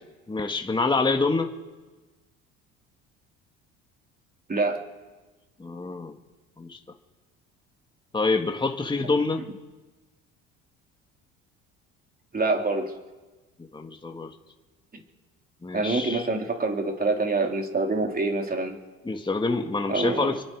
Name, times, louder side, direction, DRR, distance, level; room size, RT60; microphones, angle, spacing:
voice 1, 0.3-1.5 5.6-6.2 6.6-6.8 8.1-9.5 13.6-14.3 15.6-16.3 19.1-20.4, left 3 dB, 15° left, 4 dB, 1.9 m, -26 dB
voice 2, 4.5-4.8 12.3-12.9 14.9-15.0 15.7-18.8 19.9-20.4, right 3 dB, 25° right, 2 dB, 3.7 m, -26 dB
26.0 x 23.0 x 4.9 m, 1.2 s
supercardioid pair, 75°, 33 cm